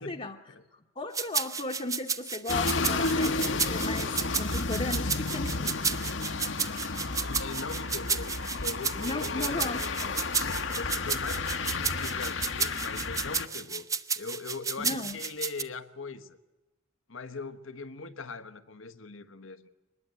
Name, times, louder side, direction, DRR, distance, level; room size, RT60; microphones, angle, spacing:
voice 1, 0.0-0.4 0.7-3.3 3.7-5.9 9.0-10.2 14.8-15.2, left 2 dB, 30° left, 0 dB, 1.0 m, -36 dB
sound 1, 1.1-15.6, right 5 dB, 15° right, 0.7 m, -32 dB
sound 2, 2.5-13.5, left 3 dB, 70° left, 1.2 m, -32 dB
voice 2, 7.2-8.3 8.6-10.1 10.7-13.8 14.2-16.4 17.1-19.7, left 4 dB, 85° left, 10 dB, 1.3 m, -40 dB
23.5 x 20.5 x 8.2 m, 1.1 s
head